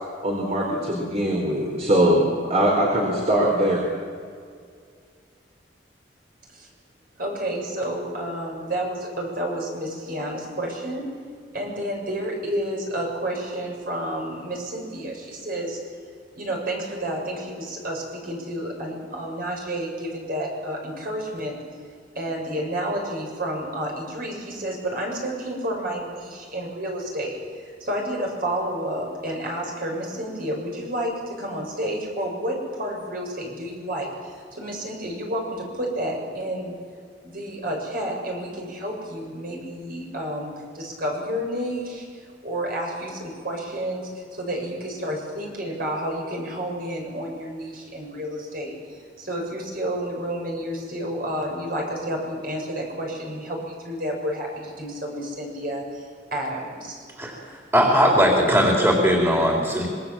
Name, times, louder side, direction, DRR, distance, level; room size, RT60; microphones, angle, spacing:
voice 1, 0.2-3.8, right 1 dB, 40° right, -1 dB, 4.2 m, -21 dB
voice 2, 7.2-11.1 11.5-15.8 16.3-21.6 22.2-27.4 27.8-36.8 37.2-57.0, right 1 dB, 55° right, 0 dB, 7.3 m, -30 dB
voice 3, 57.7-59.9, equal, 15° right, -1 dB, 4.0 m, -19 dB
26.0 x 21.5 x 7.6 m, 2.2 s
head